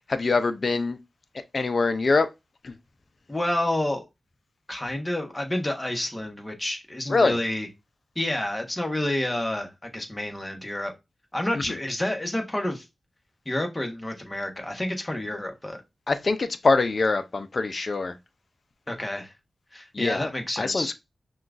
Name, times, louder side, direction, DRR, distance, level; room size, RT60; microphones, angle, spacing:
voice 1, 0.1-1.0 1.5-2.3 2.6-2.7 7.1-7.4 11.5-11.8 16.1-18.2 19.9-20.3 20.6-20.9, left 3 dB, 55° left, 0.5 m, -24 dB
voice 2, 3.3-4.0 4.7-7.7 8.1-10.9 11.3-12.9 13.4-15.8 18.9-19.3 19.7-20.9, left 1 dB, 25° left, 1.2 m, -29 dB
5.7 x 2.4 x 2.5 m
cardioid pair, 40°, 0 cm